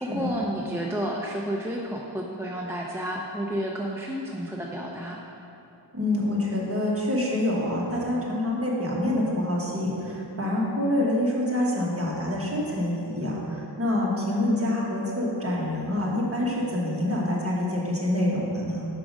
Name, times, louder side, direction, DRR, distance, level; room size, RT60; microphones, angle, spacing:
voice 1, 0.0-5.2, equal, 5° right, -2 dB, 0.4 m, -31 dB
voice 2, 5.9-18.9, left 1 dB, 30° right, -4 dB, 1.3 m, -26 dB
6.2 x 4.8 x 5.1 m, 2.7 s
wide cardioid pair, 95°, 47 cm